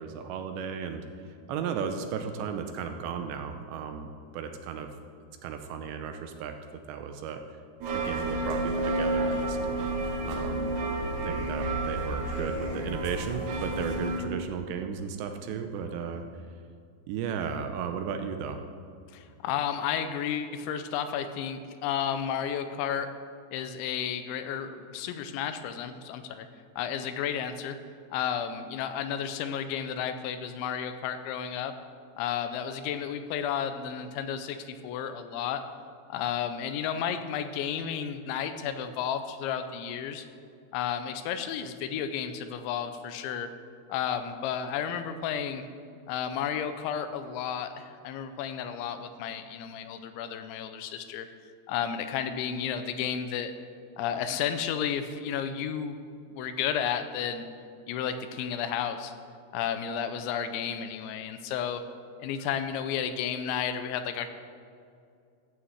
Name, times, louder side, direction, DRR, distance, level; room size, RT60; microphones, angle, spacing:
voice 1, 0.0-4.9 5.4-6.5 6.9-7.4 7.9-9.6 10.2-10.7 11.2-16.3 17.1-18.6, right 6 dB, 80° right, 6 dB, 2.8 m, -35 dB
sound 1, 7.8-14.2, right 2 dB, 65° right, 3.8 m, -30 dB
voice 2, 19.1-23.1 23.5-26.5 26.8-27.8 28.1-31.7 32.2-35.6 36.1-40.3 40.7-43.5 43.9-45.6 46.1-51.3 51.7-53.5 54.0-56.0 56.3-57.5 57.9-59.1 59.5-61.8 62.2-64.3, left 8 dB, 80° left, 9 dB, 3.0 m, -32 dB
14.0 x 6.3 x 7.8 m, 2.4 s
omnidirectional pair, 5.4 m